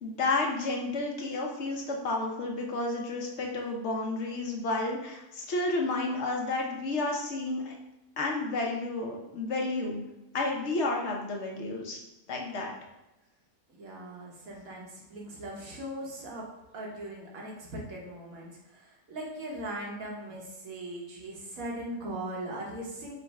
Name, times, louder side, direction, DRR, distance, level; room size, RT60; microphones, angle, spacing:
voice 1, 0.0-7.8 8.2-10.0 10.3-12.0 12.3-12.7, left 2 dB, 55° left, 0 dB, 0.9 m, -31 dB
voice 2, 13.7-16.5 16.7-23.1, right 1 dB, 65° right, -2 dB, 1.5 m, -39 dB
5.1 x 2.2 x 4.6 m, 0.94 s
omnidirectional pair, 1.7 m